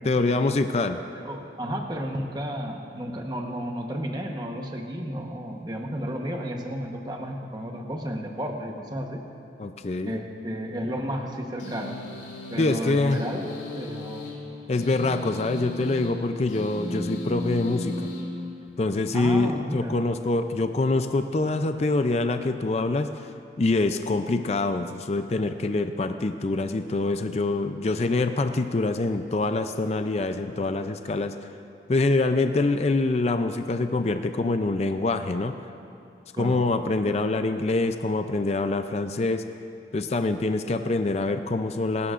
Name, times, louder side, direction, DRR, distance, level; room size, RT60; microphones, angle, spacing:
voice 1, 0.0-1.0 9.6-10.1 12.6-13.2 14.7-18.1 18.8-23.1 23.6-31.3 31.9-35.6 36.4-39.4 39.9-42.1, left 2 dB, 35° left, 8 dB, 0.4 m, -25 dB
voice 2, 1.2-9.2 10.0-12.0 12.5-14.4 19.1-19.9 36.4-36.6, equal, 25° right, 2 dB, 1.0 m, -32 dB
sound 1, 11.6-19.0, left 1 dB, 90° left, 2.6 m, -36 dB
26.5 x 13.0 x 2.5 m, 2.5 s
head